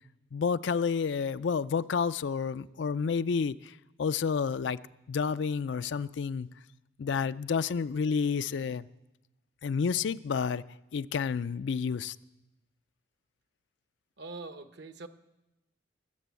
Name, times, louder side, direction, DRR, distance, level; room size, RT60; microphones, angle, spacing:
voice 1, 0.3-3.7 4.0-4.8 5.1-6.5 7.0-8.9 9.6-10.6 10.9-12.2, left 6 dB, 65° left, 15 dB, 0.4 m, -30 dB
voice 2, 14.2-15.1, right 3 dB, 60° right, 10 dB, 0.9 m, -43 dB
20.5 x 6.9 x 8.2 m, 0.96 s
head